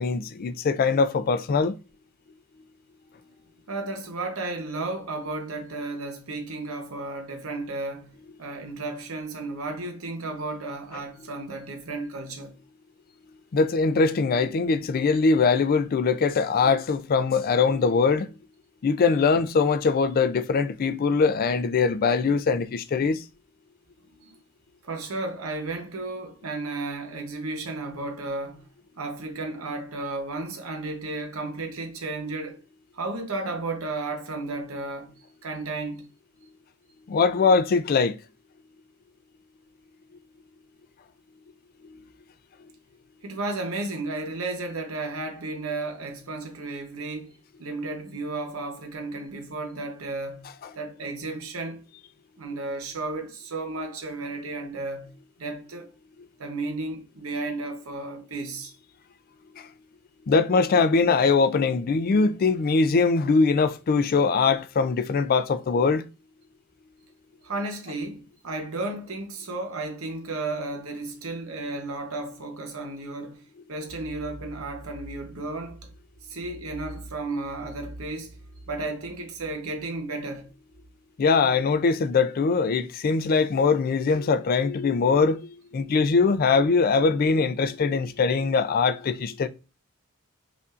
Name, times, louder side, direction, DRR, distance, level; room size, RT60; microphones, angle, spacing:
voice 1, 0.0-1.7 13.5-18.3 18.8-23.2 37.1-38.1 60.3-66.0 81.2-89.5, left 4 dB, 40° left, 0.3 m, -22 dB
voice 2, 3.7-12.6 24.2-24.4 24.8-28.7 29.0-32.6 32.9-35.1 35.4-36.1 43.2-50.5 50.8-51.8 52.4-55.9 56.4-58.7 67.4-75.9 76.2-78.4 78.7-80.5, right 2 dB, 70° right, 0.9 m, -33 dB
5.4 x 2.5 x 2.4 m
head